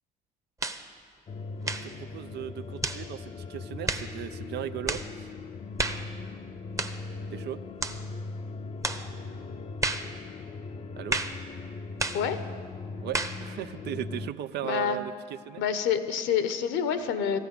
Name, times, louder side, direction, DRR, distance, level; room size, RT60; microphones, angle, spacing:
sound 1, 0.6-0.9 1.6-1.9 2.8-3.1 3.9-4.1 4.9-5.1 5.8-6.1 6.8-7.0 7.8-8.0 8.8-9.1 9.8-10.1 11.1-11.4 12.0-12.3 13.1-13.4, right 2 dB, 15° right, 1.0 m, -31 dB
sound 2, 1.3-14.3, left 3 dB, 30° left, 0.7 m, -39 dB
voice 1, 1.6-5.3 7.3-7.6 11.0-11.2 13.0-15.6, right 11 dB, 55° right, 12 dB, 0.6 m, -37 dB
voice 2, 14.6-15.0 15.6-17.4, left 8 dB, 65° left, 11 dB, 1.0 m, -27 dB
14.0 x 10.5 x 6.8 m, 2.1 s
hypercardioid pair, 60°, 20 cm